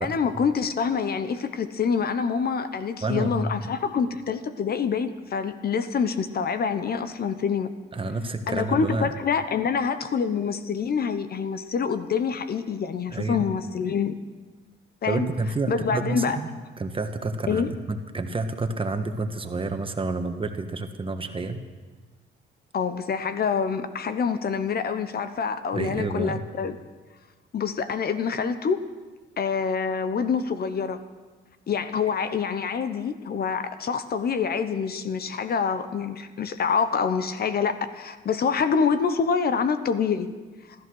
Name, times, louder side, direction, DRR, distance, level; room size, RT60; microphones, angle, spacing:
voice 1, 0.0-7.7 8.5-14.1 15.0-15.3 15.7-16.4 17.5-17.7 22.7-26.8 27.5-28.8 29.4-31.0 31.7-40.3, left 6 dB, 50° left, 11 dB, 0.9 m, -26 dB
voice 2, 3.0-3.5 7.9-9.1 13.1-13.4 15.0-16.5 16.8-21.6 25.7-26.4, right 3 dB, 25° right, 6 dB, 1.4 m, -29 dB
14.5 x 13.5 x 6.4 m, 1.3 s
cardioid pair, 90°, 20 cm